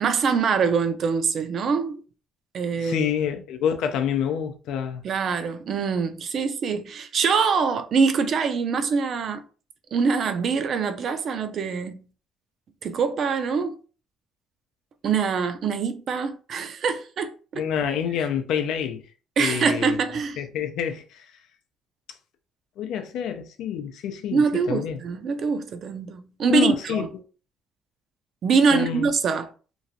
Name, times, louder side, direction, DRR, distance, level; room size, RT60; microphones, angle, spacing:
voice 1, 0.0-2.0 2.5-3.0 5.0-9.4 9.9-11.9 12.8-13.8 15.0-17.3 19.4-20.4 24.3-27.1 28.4-29.5, right 5 dB, 50° right, 0.4 m, -24 dB
voice 2, 2.8-5.0 17.5-19.0 19.4-20.0 20.4-21.3 22.8-25.0 26.5-27.1 28.7-29.1, left 8 dB, 80° left, 0.5 m, -27 dB
3.0 x 2.5 x 2.6 m
cardioid pair, 135°, 0 cm